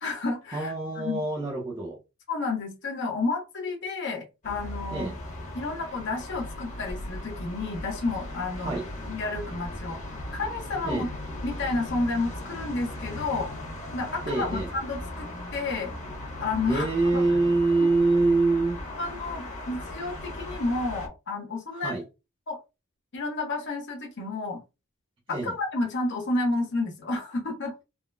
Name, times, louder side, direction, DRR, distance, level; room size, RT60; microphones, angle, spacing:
voice 1, 0.0-1.2 2.3-5.1 5.5-8.8 9.1-10.0 10.3-11.1 11.4-13.6 13.9-15.3 15.5-15.9 16.4-16.9 17.1-17.2 17.8-17.9 19.0-22.0 22.5-22.6 23.1-24.6 25.3-27.8, left 3 dB, 55° left, 0.8 m, -31 dB
voice 2, 0.5-2.0 4.9-5.1 8.6-8.8 10.9-11.1 14.3-14.7 16.7-18.8 21.7-22.0 25.3-25.5, right 3 dB, 25° right, 0.5 m, -25 dB
sound 1, 4.4-21.1, left 1 dB, 35° left, 1.0 m, -38 dB
3.7 x 2.1 x 2.2 m
head